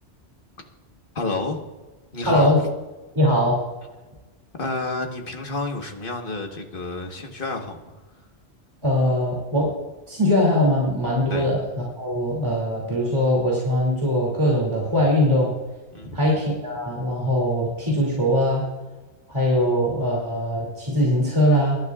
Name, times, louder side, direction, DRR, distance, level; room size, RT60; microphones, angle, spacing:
voice 1, 1.1-1.6 2.1-2.7 4.6-8.0 11.3-11.5 15.9-16.3, left 2 dB, 50° left, 3 dB, 1.6 m, -29 dB
voice 2, 2.3-2.6 3.2-3.6 8.8-9.7 10.1-15.5 16.1-18.7 19.3-21.8, equal, 25° right, -4 dB, 2.6 m, -21 dB
24.5 x 12.0 x 2.4 m, 1.2 s
omnidirectional pair, 1.2 m